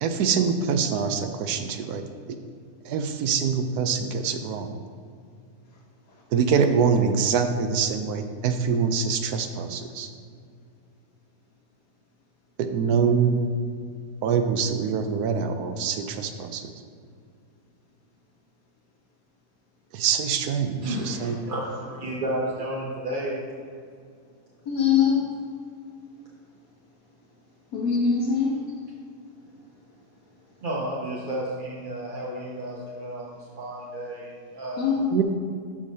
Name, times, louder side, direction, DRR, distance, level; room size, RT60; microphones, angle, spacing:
voice 1, 0.0-2.0 2.9-4.7 6.3-10.1 12.6-13.6 14.2-16.7 19.9-21.4 35.1-35.2, right 6 dB, 80° right, 7 dB, 1.2 m, -24 dB
voice 2, 20.8-23.4 30.6-34.8, right 1 dB, 40° right, -5 dB, 0.9 m, -32 dB
voice 3, 24.7-25.3 27.7-28.6 34.8-35.2, left 6 dB, 80° left, -5 dB, 1.6 m, -22 dB
12.5 x 5.0 x 2.8 m, 2.2 s
omnidirectional pair, 1.6 m